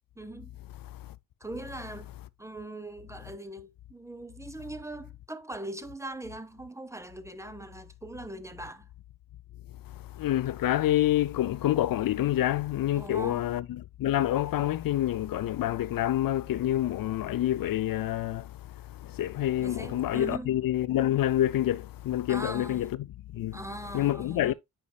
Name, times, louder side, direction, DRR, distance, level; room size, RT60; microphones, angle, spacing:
voice 1, 0.2-0.6 1.4-2.1 2.4-8.9 13.0-13.5 19.6-20.6 22.3-22.9 23.5-24.5, right 1 dB, 10° right, 0.8 m, -40 dB
voice 2, 0.8-1.1 9.9-23.1 23.3-23.6 23.9-24.5, left 13 dB, 80° left, 0.5 m, -27 dB
8.5 x 5.3 x 2.3 m
wide cardioid pair, 120°, 33 cm